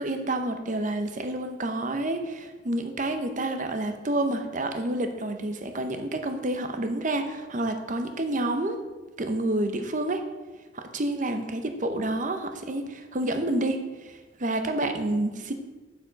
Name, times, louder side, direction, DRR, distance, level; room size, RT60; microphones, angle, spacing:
voice 1, 0.0-8.8 9.2-10.2 10.7-15.5, right 1 dB, 40° right, 7 dB, 0.8 m, -29 dB
7.3 x 6.9 x 5.2 m, 1.2 s
head